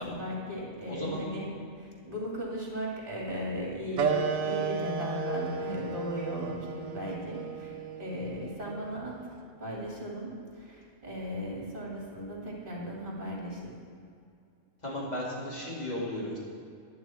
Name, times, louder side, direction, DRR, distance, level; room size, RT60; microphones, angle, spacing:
voice 1, 0.0-1.5 1.8-9.1 9.6-13.7, equal, 40° right, -4 dB, 3.0 m, -37 dB
voice 2, 0.9-1.2 14.8-16.4, left 1 dB, 30° left, -5 dB, 2.7 m, -35 dB
sound 1, 4.0-9.1, right 5 dB, 70° right, 1.1 m, -33 dB
11.5 x 11.0 x 4.4 m, 2.4 s
omnidirectional pair, 1.4 m